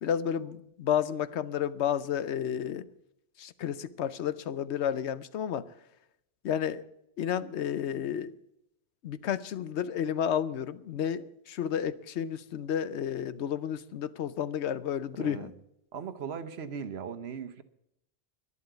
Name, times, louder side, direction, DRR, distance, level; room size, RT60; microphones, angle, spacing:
voice 1, 0.0-2.9 3.4-5.8 6.4-6.8 7.2-8.3 9.0-15.5, left 9 dB, 75° left, 1.0 m, -31 dB
voice 2, 15.2-15.5 15.9-17.6, right 7 dB, 70° right, 1.1 m, -38 dB
11.0 x 11.0 x 8.0 m
omnidirectional pair, 1.1 m